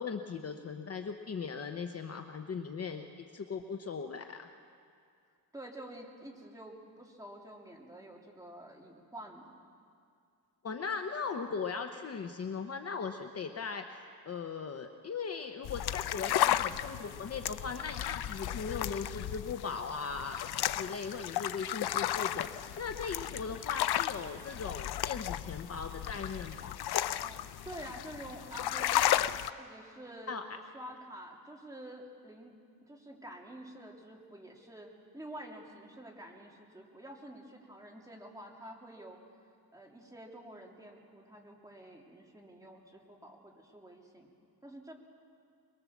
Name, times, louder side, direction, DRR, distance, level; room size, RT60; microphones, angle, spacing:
voice 1, 0.0-4.5 10.6-13.8 14.3-26.8 30.3-30.4, left 5 dB, 40° left, 6 dB, 0.9 m, -39 dB
voice 2, 5.5-9.5 27.2-30.4 30.7-32.5 32.9-39.2 39.7-44.3 44.6-44.9, right 1 dB, 10° right, -1 dB, 2.8 m, -48 dB
sound 1, 15.6-29.5, left 12 dB, 75° left, 0.6 m, -34 dB
23.0 x 22.5 x 7.3 m, 2.3 s
wide cardioid pair, 135°, 39 cm